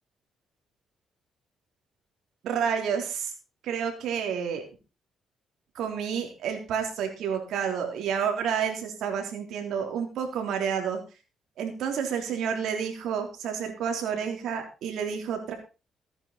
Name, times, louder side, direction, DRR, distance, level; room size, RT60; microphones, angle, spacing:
voice 1, 2.4-3.3 3.6-4.6 5.7-11.0 11.6-15.5, right 7 dB, 75° right, 4 dB, 3.5 m, -30 dB
14.5 x 9.8 x 4.2 m, 0.31 s
cardioid pair, 90°, 0 cm